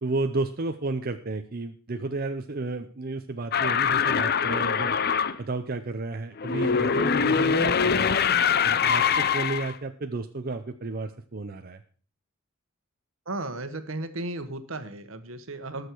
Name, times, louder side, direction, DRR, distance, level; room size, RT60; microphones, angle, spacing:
voice 1, 0.0-5.0 5.4-8.1 8.6-11.8, right 3 dB, 45° right, 6 dB, 0.7 m, -32 dB
sound 1, 3.5-5.4 6.4-9.7, left 6 dB, 50° left, 0.6 m, -23 dB
voice 2, 13.2-15.9, right 2 dB, 75° right, 9 dB, 1.3 m, -35 dB
20.0 x 6.6 x 4.6 m, 0.40 s
head